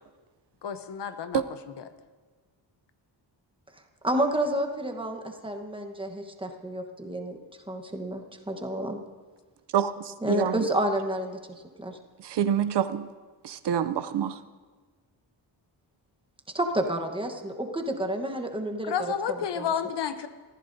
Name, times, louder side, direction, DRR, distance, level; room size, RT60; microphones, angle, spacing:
voice 1, 0.6-1.9 18.9-20.3, left 8 dB, 65° left, 10 dB, 0.9 m, -31 dB
voice 2, 4.0-7.4 7.7-9.0 10.2-11.4 11.8-12.0 16.5-19.1 19.5-19.7, right 1 dB, 10° right, 4 dB, 1.1 m, -30 dB
voice 3, 12.3-13.1 13.4-14.3, right 8 dB, 65° right, 12 dB, 0.6 m, -25 dB
25.5 x 15.0 x 2.7 m, 1.4 s
wide cardioid pair, 170°, 46 cm